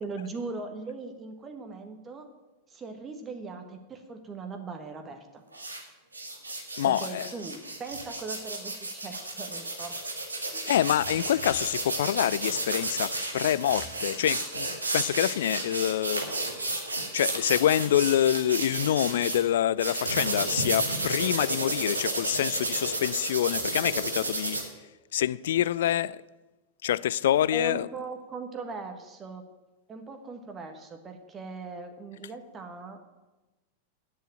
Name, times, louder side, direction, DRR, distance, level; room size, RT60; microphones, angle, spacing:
voice 1, 0.0-2.3 2.7-5.4 6.8-10.0 10.5-10.7 27.5-29.4 29.9-33.0, right 4 dB, 20° right, 1.4 m, -39 dB
sound 1, 5.5-5.8 6.1-19.4 19.8-24.6, right 2 dB, 80° right, 2.0 m, -32 dB
voice 2, 6.8-7.3 10.7-16.2 17.1-24.6 25.1-26.2 26.8-27.9, left 11 dB, 60° left, 0.4 m, -26 dB
9.1 x 7.7 x 8.9 m
figure-of-eight pair, 90°, 0 cm